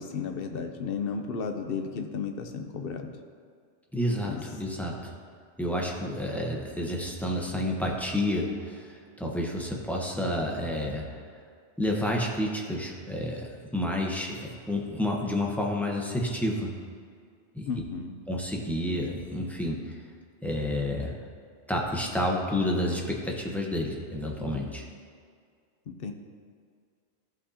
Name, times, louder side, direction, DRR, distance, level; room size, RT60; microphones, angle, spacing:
voice 1, 0.0-3.1 4.2-4.4 17.7-18.1 25.9-26.1, left 5 dB, 60° left, 6 dB, 0.9 m, -33 dB
voice 2, 3.9-5.1 5.6-11.0 11.8-16.7 17.5-17.7 18.3-20.0 20.4-21.2 21.7-24.8, left 1 dB, ahead, -1 dB, 0.9 m, -30 dB
14.0 x 5.8 x 2.8 m, 2.1 s
omnidirectional pair, 1.2 m